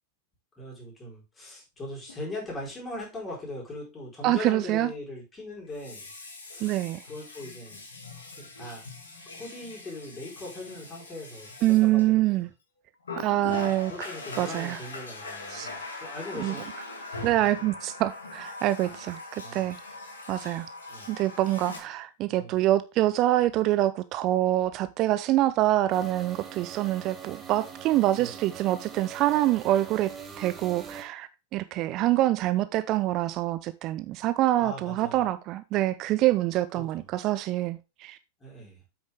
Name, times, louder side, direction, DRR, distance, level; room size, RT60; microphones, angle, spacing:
voice 1, 0.6-6.1 6.5-6.8 7.1-7.8 8.4-8.9 9.3-12.5 13.9-16.7 19.4-19.7 20.9-21.1 22.4-22.5 28.2-28.5 34.6-35.2 36.7-37.1 38.4-38.8, left 1 dB, 20° left, 4.6 m, -40 dB
Water tap faucet, 2.1-2.2 5.6-12.5 13.0-21.8, left 3 dB, 70° left, 2.0 m, -41 dB
voice 2, 4.2-4.9 6.6-7.0 11.6-12.5 13.2-13.9 14.4-14.8 15.5-15.7 16.3-16.6 17.2-19.8 20.3-20.7 21.1-38.2, right 15 dB, 40° right, 0.4 m, -25 dB
sound 1, 25.9-31.0, right 7 dB, 20° right, 1.6 m, -43 dB
8.3 x 6.2 x 3.5 m
figure-of-eight pair, 90°, 0 cm